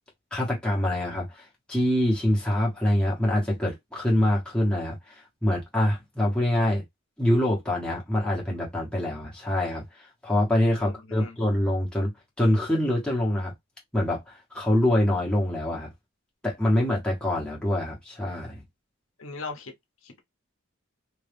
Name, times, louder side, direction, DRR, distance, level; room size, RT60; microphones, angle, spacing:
voice 1, 0.3-6.8 7.2-12.1 12.4-13.5 13.9-15.9 16.4-18.6, left 1 dB, 5° left, 1.2 m, -25 dB
voice 2, 10.8-11.4 19.2-19.7 20.0-20.2, left 4 dB, 70° left, 0.8 m, -39 dB
2.9 x 2.7 x 3.4 m
head